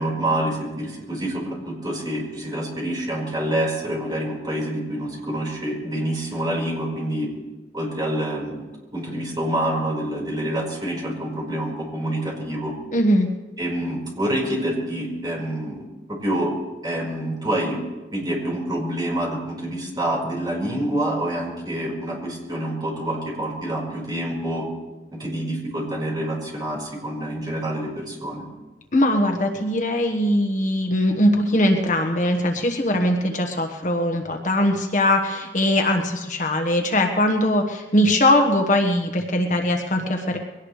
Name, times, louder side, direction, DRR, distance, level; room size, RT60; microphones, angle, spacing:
voice 1, 0.0-7.3 7.7-8.6 8.9-12.7 13.6-15.8 16.1-16.5 16.8-17.8 18.1-24.7 25.1-28.4, right 1 dB, 25° right, -1 dB, 4.9 m, -27 dB
voice 2, 12.9-13.3 28.9-40.4, left 1 dB, 45° left, 4 dB, 1.3 m, -21 dB
22.5 x 18.0 x 3.3 m, 1.1 s
head